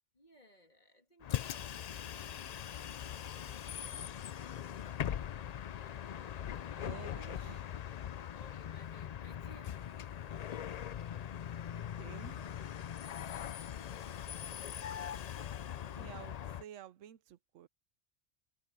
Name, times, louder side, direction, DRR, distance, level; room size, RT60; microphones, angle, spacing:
voice 1, 0.1-4.1 8.3-9.8, left 2 dB, 35° left, 3.1 m, -61 dB
Bus, 1.2-16.6, left 9 dB, 70° left, 0.3 m, -41 dB
voice 2, 6.7-7.7 10.2-10.4 11.7-12.5 15.9-17.7, right 11 dB, 85° right, 1.0 m, -52 dB
omnidirectional pair, 1.3 m